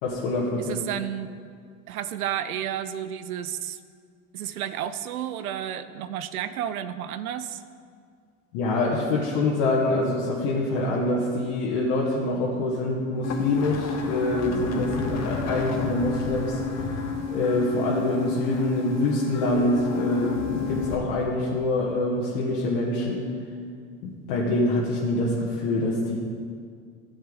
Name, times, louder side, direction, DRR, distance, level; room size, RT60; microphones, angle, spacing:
voice 1, 0.0-0.7 8.5-16.6 17.3-23.3 24.0-26.2, left 2 dB, 65° left, -5 dB, 1.6 m, -25 dB
voice 2, 0.7-1.3 1.9-3.8 4.3-7.6, right 10 dB, 85° right, 12 dB, 0.6 m, -31 dB
sound 1, 13.2-20.9, left 5 dB, 40° left, 1.4 m, -31 dB
12.5 x 7.2 x 3.9 m, 2.1 s
hypercardioid pair, 85°, 42 cm